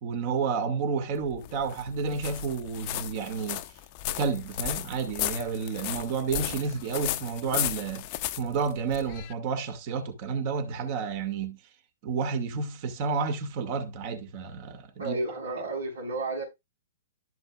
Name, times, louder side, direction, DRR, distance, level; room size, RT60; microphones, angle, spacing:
voice 1, 0.0-3.6 4.1-8.1 8.4-11.6 12.0-15.2, right 5 dB, 40° right, 2.2 m, -30 dB
sound 1, 1.2-9.3, left 15 dB, 40° left, 0.7 m, -35 dB
voice 2, 15.0-16.4, right 2 dB, 75° right, 5.5 m, -32 dB
12.5 x 6.2 x 2.4 m
figure-of-eight pair, 115°, 0 cm